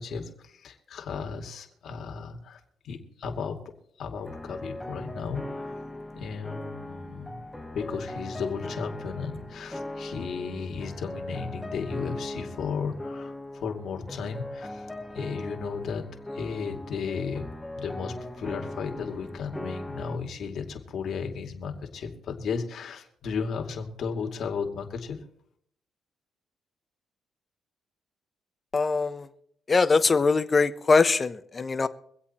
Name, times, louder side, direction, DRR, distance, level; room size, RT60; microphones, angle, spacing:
voice 1, 0.0-2.6 2.8-3.7 4.0-5.8 6.1-7.4 7.7-14.9 15.1-16.1 16.3-25.2, left 5 dB, 60° left, 2.4 m, -34 dB
sound 1, 4.2-20.2, left 1 dB, 10° left, 1.3 m, -39 dB
voice 2, 28.7-29.3 29.7-31.9, left 4 dB, 30° left, 1.0 m, -22 dB
24.0 x 8.2 x 4.3 m
cardioid pair, 90°, 0 cm